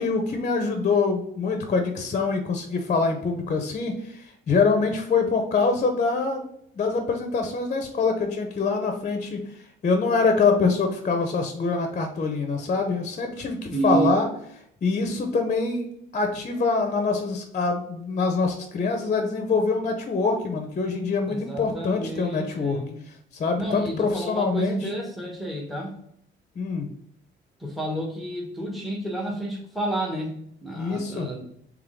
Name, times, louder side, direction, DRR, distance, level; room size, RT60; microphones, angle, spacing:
voice 1, 0.0-6.5 6.7-9.4 9.8-14.3 14.8-15.9 16.1-22.8 23.4-24.8 26.6-26.9 30.7-31.3, left 4 dB, 40° left, 5 dB, 0.7 m, -24 dB
voice 2, 13.7-14.2 21.2-23.0 23.6-26.0 27.6-31.4, right 2 dB, ahead, 0 dB, 1.0 m, -30 dB
3.6 x 3.1 x 3.6 m, 0.71 s
cardioid pair, 90°, 20 cm